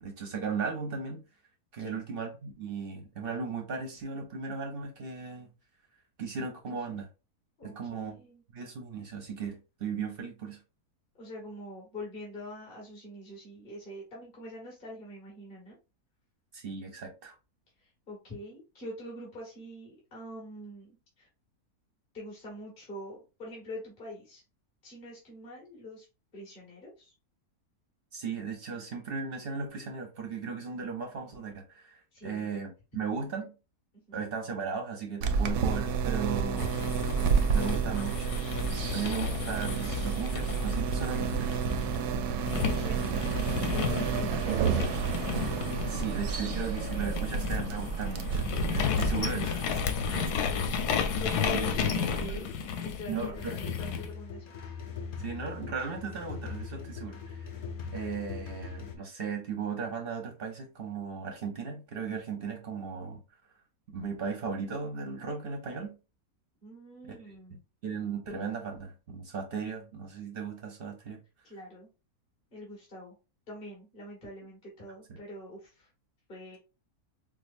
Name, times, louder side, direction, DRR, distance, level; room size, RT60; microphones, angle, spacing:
voice 1, 0.0-1.2 1.7-5.5 6.2-7.1 7.6-8.2 8.5-10.6 16.5-17.3 28.1-33.5 34.1-36.9 37.5-38.7 38.9-41.6 44.3-44.4 45.8-49.7 51.4-51.7 52.2-52.4 53.1-53.5 55.2-57.5 57.9-63.2 63.9-66.0 67.0-67.4 67.8-71.2, right 5 dB, 50° right, 0.7 m, -36 dB
voice 2, 7.6-8.4 11.2-15.8 18.1-21.3 22.1-24.4 24.8-26.1 26.3-27.1 32.1-32.5 33.9-34.2 36.5-36.9 42.5-43.2 43.7-44.9 50.1-50.6 50.9-52.6 52.8-54.7 66.6-67.6 71.4-71.9 72.5-73.2 73.5-75.9 76.3-76.6, left 1 dB, 35° left, 1.7 m, -44 dB
sound 1, 35.2-52.4, right 6 dB, 90° right, 1.1 m, -31 dB
sound 2, 36.6-42.0 42.5-54.1, left 7 dB, 90° left, 1.2 m, -33 dB
sound 3, 53.3-59.0, left 5 dB, 55° left, 0.6 m, -41 dB
4.9 x 2.0 x 2.5 m
omnidirectional pair, 1.6 m